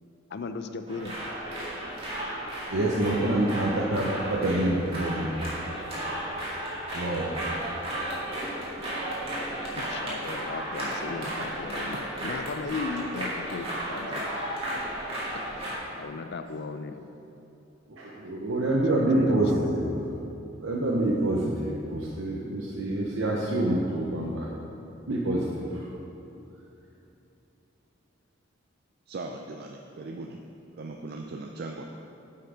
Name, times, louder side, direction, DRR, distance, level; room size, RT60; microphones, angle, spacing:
voice 1, 0.3-1.2 9.7-14.3 16.0-17.1 18.6-20.0, left 4 dB, 60° left, 9 dB, 0.5 m, -36 dB
sound 1, 0.9-15.8, right 1 dB, 30° right, 2.0 m, -34 dB
voice 2, 2.7-5.4 6.9-7.4 17.9-19.9 20.6-24.5 25.1-25.9, right 1 dB, 85° right, -4 dB, 0.8 m, -26 dB
voice 3, 29.1-30.4 30.8-31.8, right 3 dB, 55° right, 3 dB, 0.4 m, -38 dB
7.8 x 5.7 x 5.0 m, 2.8 s
head